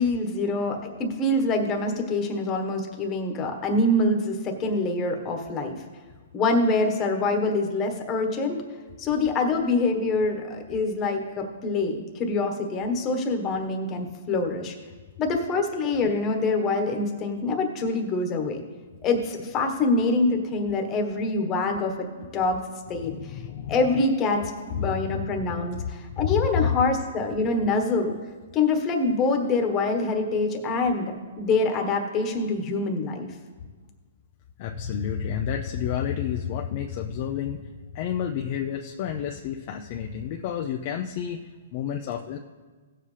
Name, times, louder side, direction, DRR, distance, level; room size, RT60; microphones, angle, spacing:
voice 1, 0.0-5.8 6.3-8.6 9.0-14.7 15.2-18.6 19.0-22.6 22.9-23.2 23.7-28.2 28.5-31.1 31.4-33.3, left 3 dB, 20° left, 3 dB, 1.3 m, -25 dB
voice 2, 23.0-23.7 24.9-25.3 26.2-26.7 34.6-37.6 37.9-41.4 41.7-42.4, left 8 dB, 40° left, 3 dB, 0.5 m, -30 dB
16.5 x 7.5 x 3.3 m, 1.4 s
hypercardioid pair, 150°, 0 cm